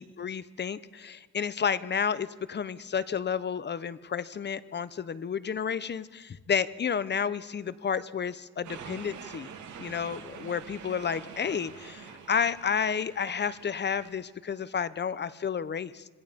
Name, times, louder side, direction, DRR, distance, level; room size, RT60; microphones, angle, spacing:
voice 1, 0.0-9.5 9.8-16.0, left 7 dB, 35° left, 15 dB, 0.9 m, -31 dB
sound 1, 8.6-14.1, right 7 dB, 75° right, 3.0 m, -46 dB
26.5 x 21.0 x 5.3 m, 1.4 s
cardioid pair, 90°, 30 cm